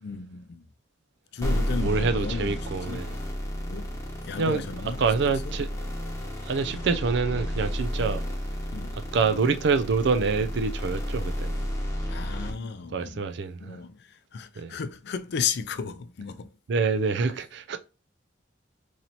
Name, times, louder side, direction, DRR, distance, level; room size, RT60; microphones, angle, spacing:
voice 1, 0.0-0.7 1.3-3.0 3.6-4.0 4.2-5.5 6.7-6.8 8.7-9.0 12.1-13.2 13.6-16.5, left 6 dB, 60° left, 0.4 m, -34 dB
sound 1, 1.4-12.5, equal, 15° left, 1.0 m, -32 dB
voice 2, 1.7-3.1 4.4-4.6 5.0-5.7 6.4-8.2 9.1-11.7 12.9-13.8 14.6-14.7 16.7-17.8, right 4 dB, 65° right, 0.4 m, -26 dB
3.1 x 2.8 x 4.0 m
head